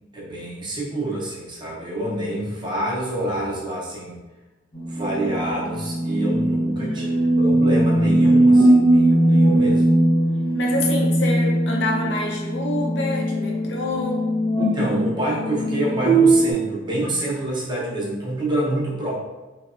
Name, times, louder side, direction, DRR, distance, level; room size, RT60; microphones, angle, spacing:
voice 1, 0.1-4.2 4.9-7.1 7.4-9.8 14.6-19.1, right 1 dB, 25° right, -5 dB, 0.6 m, -27 dB
sound 1, 4.7-16.5, right 1 dB, 35° left, 0.8 m, -19 dB
voice 2, 6.8-7.3 10.5-14.2, left 2 dB, 65° left, -1 dB, 0.5 m, -27 dB
3.2 x 2.0 x 2.4 m, 1.1 s
head